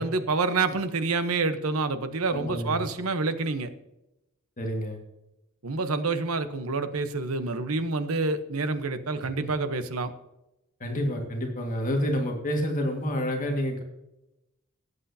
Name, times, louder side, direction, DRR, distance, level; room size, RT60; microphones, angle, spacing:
voice 1, 0.0-3.7 5.6-10.1, right 3 dB, 90° right, 10 dB, 1.0 m, -28 dB
voice 2, 2.3-2.8 4.6-5.0 9.2-9.5 10.8-13.8, equal, 40° left, 2 dB, 1.9 m, -29 dB
17.0 x 8.2 x 2.8 m, 0.91 s
head